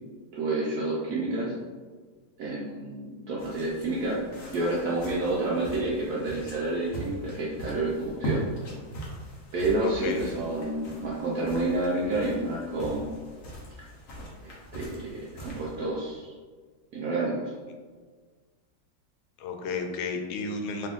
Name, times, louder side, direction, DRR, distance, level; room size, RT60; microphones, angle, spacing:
voice 1, 0.3-1.6 2.4-4.2 4.5-8.4 9.5-13.2 14.4-16.4 16.9-17.5, right 2 dB, 75° right, -5 dB, 0.9 m, -29 dB
sound 1, 3.4-16.1, right 1 dB, 55° left, 1.0 m, -40 dB
voice 2, 9.8-10.2 19.4-20.9, left 4 dB, 85° left, 3 dB, 1.4 m, -32 dB
3.2 x 2.7 x 3.6 m, 1.5 s
omnidirectional pair, 2.2 m